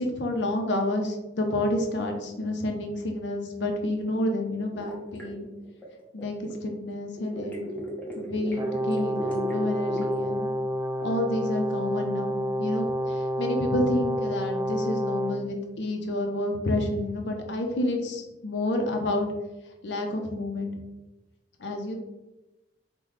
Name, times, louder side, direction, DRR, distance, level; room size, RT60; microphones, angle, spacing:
voice 1, 0.0-5.5 6.1-7.6 8.2-10.5 11.0-19.3 19.8-20.7 21.6-21.9, left 1 dB, 70° left, 3 dB, 0.6 m, -29 dB
sound 1, 4.7-6.5 7.2-10.3, right 1 dB, 10° left, 0.7 m, -37 dB
Brass instrument, 8.5-15.4, equal, 15° right, 0.3 m, -29 dB
3.8 x 2.2 x 3.1 m, 1.0 s
head